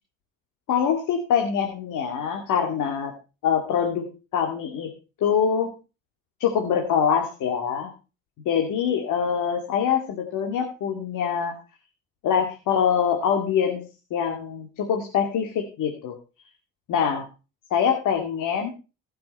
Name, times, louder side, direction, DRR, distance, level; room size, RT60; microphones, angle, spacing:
voice 1, 0.7-3.1 3.4-4.9 5.2-5.7 6.4-7.9 8.5-11.5 12.2-16.1 16.9-17.3 17.7-18.7, left 7 dB, 85° left, 2 dB, 2.3 m, -24 dB
20.0 x 6.8 x 4.2 m, 0.32 s
cardioid pair, 90°, 30 cm